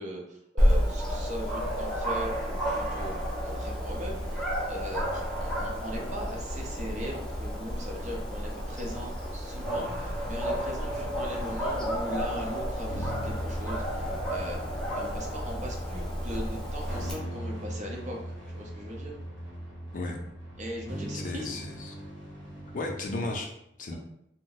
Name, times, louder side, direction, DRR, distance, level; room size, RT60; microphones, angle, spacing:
voice 1, 0.0-19.1 20.6-21.5, equal, 40° right, 0 dB, 0.6 m, -39 dB
Dog, 0.6-17.1, equal, 5° left, 0.7 m, -31 dB
sound 1, 9.6-23.4, equal, 85° right, 1.3 m, -40 dB
voice 2, 21.1-22.0 22.7-23.5 23.8-24.0, left 2 dB, 45° left, 2 dB, 0.5 m, -34 dB
2.7 x 2.1 x 3.9 m, 0.77 s
head